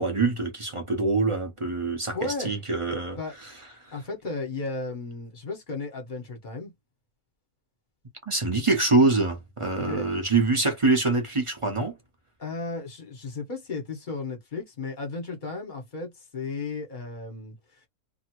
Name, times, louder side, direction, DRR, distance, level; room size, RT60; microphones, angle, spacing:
voice 1, 0.0-3.5 3.8-3.9 8.3-12.0, right 3 dB, 30° right, 0.8 m, -25 dB
voice 2, 2.1-2.5 3.2-3.3 3.9-6.7 9.8-10.0 12.4-17.6, left 3 dB, 40° left, 1.2 m, -34 dB
2.7 x 2.7 x 2.8 m
omnidirectional pair, 1.4 m